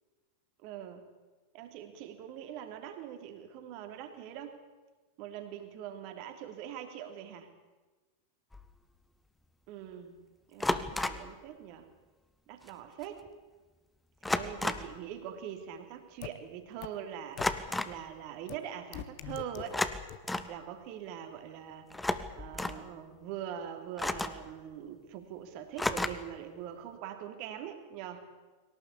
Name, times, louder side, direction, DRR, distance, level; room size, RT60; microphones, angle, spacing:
voice 1, 0.6-1.1 1.5-4.6 5.2-7.5 9.7-10.2 10.5-11.9 12.5-13.2 14.2-19.8 20.5-28.3, right 9 dB, 45° right, 7 dB, 3.0 m, -43 dB
sound 1, 8.5-8.7 10.6-11.3 12.7-12.8 13.0-13.3 14.2-15.0 17.4-18.0 19.6-20.5 21.9-22.8 24.0-24.5 25.8-26.4, left 2 dB, 5° left, 1.3 m, -33 dB
sound 2, 16.2-16.3 16.8-16.9 17.4-17.5 18.5-18.6 18.9-19.6 20.1-20.2, left 14 dB, 45° left, 1.5 m, -40 dB
22.5 x 18.0 x 8.5 m, 1.3 s
figure-of-eight pair, 90°, 0 cm